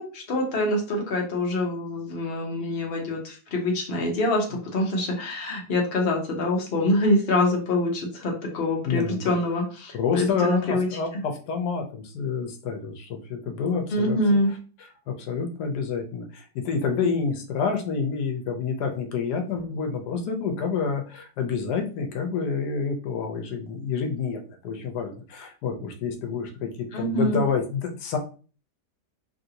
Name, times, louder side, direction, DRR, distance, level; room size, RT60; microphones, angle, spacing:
voice 1, 0.0-10.9 13.9-14.5 26.9-27.4, left 1 dB, 45° left, 0 dB, 0.9 m, -25 dB
voice 2, 8.8-9.3 9.9-14.2 15.1-28.2, left 5 dB, 85° left, 3 dB, 1.2 m, -28 dB
3.2 x 2.6 x 2.7 m, 0.37 s
omnidirectional pair, 1.7 m